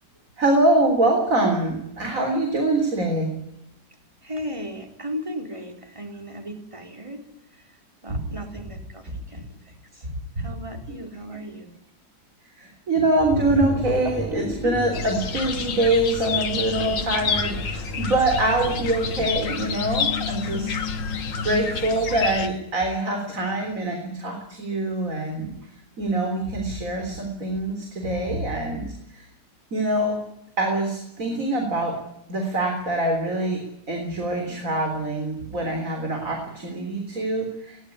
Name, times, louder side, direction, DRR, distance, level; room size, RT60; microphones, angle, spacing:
voice 1, 0.4-3.3 8.1-8.2 10.0-10.5 12.6-20.8 21.4-25.5 26.0-29.3 29.7-30.2 30.6-32.0 32.3-37.8, right 2 dB, 45° right, 3 dB, 4.1 m, -24 dB
voice 2, 4.2-7.3 7.5-10.1 10.4-11.7, equal, 15° right, 4 dB, 4.0 m, -36 dB
sound 1, 13.2-19.3, left 1 dB, ahead, 7.8 m, -34 dB
sound 2, 14.9-22.5, left 6 dB, 85° left, 2.4 m, -28 dB
21.5 x 18.0 x 9.9 m, 0.83 s
omnidirectional pair, 1.9 m